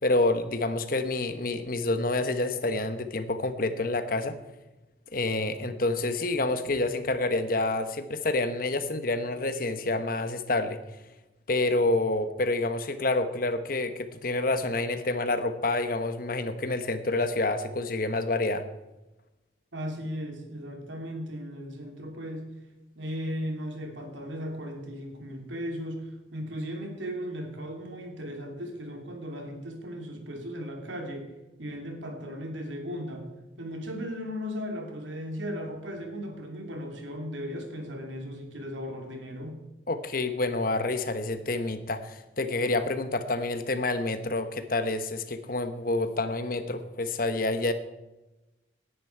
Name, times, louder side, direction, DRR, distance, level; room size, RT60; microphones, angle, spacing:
voice 1, 0.0-4.4 5.1-10.8 11.5-18.6 39.9-47.7, left 2 dB, 50° left, 10 dB, 1.1 m, -28 dB
voice 2, 19.7-22.5 22.9-31.3 31.6-33.3 33.6-39.6, equal, 85° right, 3 dB, 2.9 m, -36 dB
18.5 x 10.0 x 4.6 m, 1.0 s
head